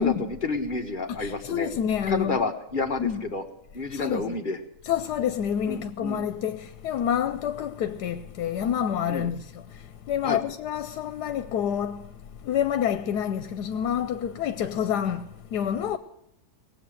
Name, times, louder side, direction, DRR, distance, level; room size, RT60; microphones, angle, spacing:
voice 1, 0.0-1.7 2.1-3.4 3.7-4.6 5.7-6.2 9.1-9.3 10.2-10.4, left 3 dB, 35° left, 1.4 m, -30 dB
voice 2, 1.1-2.4 3.0-3.2 3.9-4.3 4.8-16.0, left 9 dB, 85° left, 1.3 m, -28 dB
18.5 x 7.9 x 7.8 m
omnidirectional pair, 1.7 m